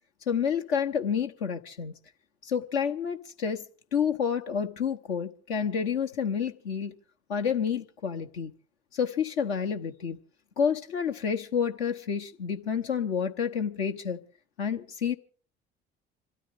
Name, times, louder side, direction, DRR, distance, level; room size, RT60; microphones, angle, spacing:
voice 1, 0.3-1.9 2.4-3.6 3.9-6.9 7.3-8.5 8.9-10.2 10.6-14.2 14.6-15.2, left 7 dB, 75° left, 1.0 m, -29 dB
26.5 x 13.0 x 3.5 m
figure-of-eight pair, 50°, 32 cm